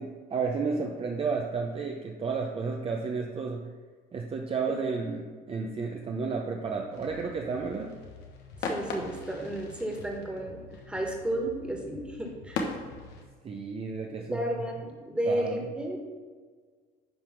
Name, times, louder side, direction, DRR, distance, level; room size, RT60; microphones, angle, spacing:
voice 1, 0.0-3.7 4.1-7.9 13.4-14.4 15.3-15.6, right 4 dB, 35° right, 1 dB, 0.7 m, -32 dB
sound 1, 6.9-13.2, left 4 dB, 85° left, 1.2 m, -39 dB
voice 2, 8.5-10.6 10.9-12.7 14.3-16.0, right 1 dB, 5° right, 0 dB, 1.8 m, -32 dB
10.5 x 3.5 x 6.2 m, 1.5 s
cardioid pair, 110°, 17 cm